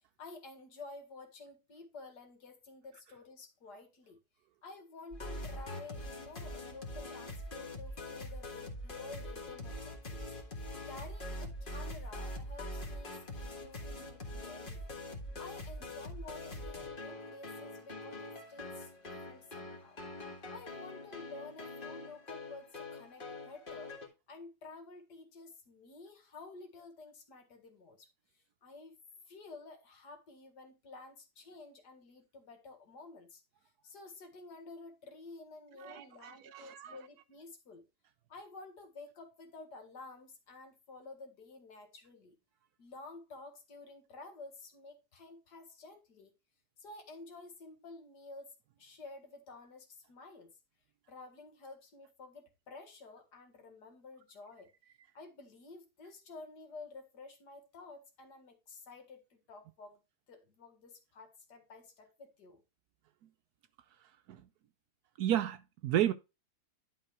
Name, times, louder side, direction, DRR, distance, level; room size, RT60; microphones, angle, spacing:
voice 1, 0.2-4.2 4.6-10.2 10.8-14.8 15.4-20.0 20.5-24.0 24.3-28.1 28.6-28.9 29.3-33.4 33.8-37.8 38.3-42.4 42.8-46.3 46.8-50.5 51.1-54.7 55.1-60.0 60.3-62.6, left 3 dB, 70° left, 2.2 m, -51 dB
sound 1, 5.1-24.1, left 1 dB, 30° left, 1.7 m, -44 dB
voice 2, 35.8-37.0 64.3-64.4 65.2-66.1, right 11 dB, 70° right, 1.1 m, -32 dB
11.0 x 3.8 x 4.6 m
omnidirectional pair, 1.9 m